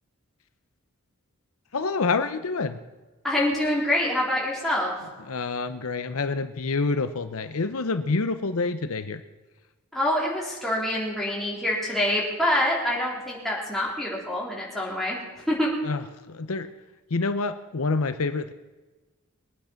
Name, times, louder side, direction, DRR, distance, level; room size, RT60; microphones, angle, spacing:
voice 1, 1.7-2.8 5.3-9.2 15.8-16.0 16.3-16.7 17.1-18.5, left 3 dB, 70° left, 10 dB, 0.7 m, -27 dB
voice 2, 3.2-4.9 9.9-15.2 15.5-15.7, left 1 dB, ahead, -5 dB, 3.8 m, -26 dB
22.5 x 9.2 x 5.9 m, 1.2 s
head